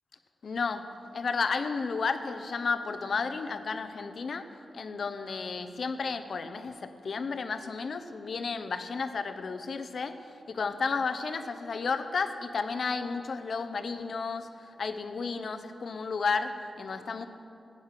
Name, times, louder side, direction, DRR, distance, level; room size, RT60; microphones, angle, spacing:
voice 1, 0.4-4.5 4.7-17.2, left 4 dB, 65° left, 9 dB, 0.8 m, -32 dB
16.5 x 9.2 x 6.0 m, 2.7 s
wide cardioid pair, 110°, 0 cm